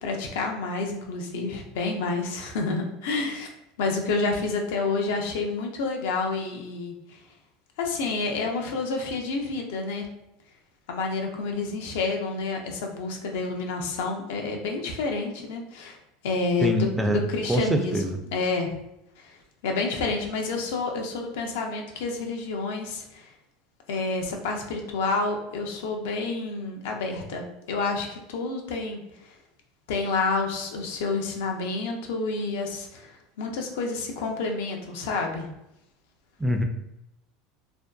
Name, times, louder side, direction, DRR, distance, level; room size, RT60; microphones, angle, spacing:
voice 1, 0.0-3.5 3.8-7.2 7.8-10.1 10.9-16.0 16.2-18.0 18.3-18.7 19.2-19.4 19.6-23.3 23.9-29.3 29.9-33.1 33.4-35.5, left 3 dB, 80° left, 2 dB, 0.5 m, -29 dB
voice 2, 16.6-17.2 17.5-18.2 36.4-36.6, equal, 5° right, 3 dB, 0.3 m, -24 dB
2.5 x 2.2 x 2.3 m, 0.85 s
supercardioid pair, 120°, 0 cm